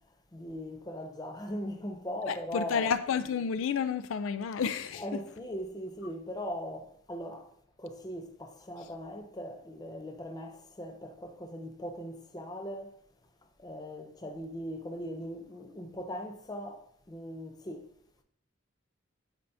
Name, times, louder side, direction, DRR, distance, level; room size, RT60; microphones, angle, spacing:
voice 1, 0.3-2.9 5.0-7.5 7.8-13.0 13.6-17.9, equal, 20° left, 0.4 m, -39 dB
voice 2, 2.3-5.0, left 6 dB, 80° left, 0.4 m, -30 dB
8.6 x 4.5 x 2.6 m
head